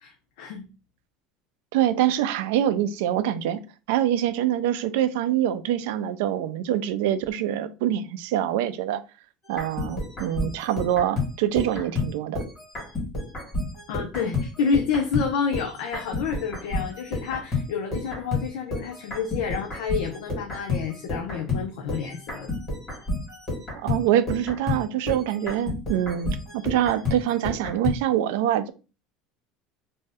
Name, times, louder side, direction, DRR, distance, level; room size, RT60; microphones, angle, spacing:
voice 1, 0.0-0.7 13.9-22.5, left 6 dB, 75° left, 0.5 m, -29 dB
voice 2, 1.7-3.6 3.9-9.0 9.5-12.4 23.7-28.7, right 11 dB, 80° right, 0.3 m, -25 dB
sound 1, 9.5-15.3 15.5-28.0, left 3 dB, 25° left, 1.5 m, -30 dB
2.5 x 2.1 x 3.4 m
cardioid pair, 175°, 0 cm